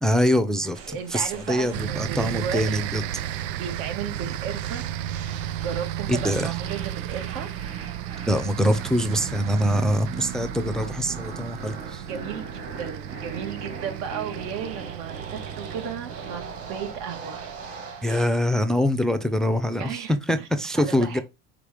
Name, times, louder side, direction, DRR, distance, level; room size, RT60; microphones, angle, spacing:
voice 1, 0.0-3.0 6.1-6.5 8.3-12.1 18.0-20.0 20.3-21.2, equal, ahead, 0.5 m, -24 dB
sound 1, 0.7-18.4, right 5 dB, 45° right, 3.0 m, -40 dB
voice 2, 0.9-3.0 3.5-4.8 5.6-7.5 12.0-16.4 16.7-17.4 19.8-20.5 20.8-21.2, right 8 dB, 75° right, 2.2 m, -34 dB
sound 2, 1.7-18.5, right 12 dB, 90° right, 0.5 m, -34 dB
5.2 x 5.0 x 5.0 m
cardioid pair, 130°, 32 cm